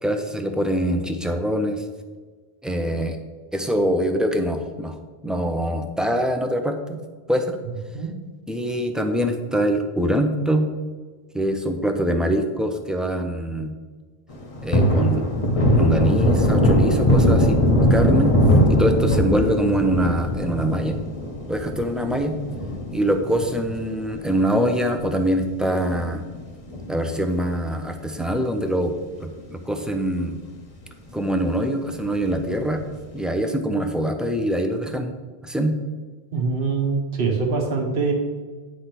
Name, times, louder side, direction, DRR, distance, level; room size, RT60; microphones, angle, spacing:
voice 1, 0.0-1.8 2.6-3.2 3.5-4.9 5.2-7.0 7.3-7.6 8.5-10.7 11.3-13.7 14.6-15.3 15.8-17.6 17.9-18.4 18.7-21.0 21.5-22.4 22.9-26.2 26.9-28.9 29.2-30.4 31.1-32.8 33.1-35.2 35.4-35.8, equal, ahead, 5 dB, 0.4 m, -24 dB
Thunder, 14.3-25.0 25.4-25.5 25.9-27.4 27.7-27.8 28.2-29.0 29.4-29.5 29.8-29.9 32.3-32.8, equal, 35° left, 0.9 m, -21 dB
voice 2, 36.3-38.1, right 4 dB, 60° right, 1 dB, 1.3 m, -23 dB
9.3 x 3.4 x 5.9 m, 1.4 s
omnidirectional pair, 1.1 m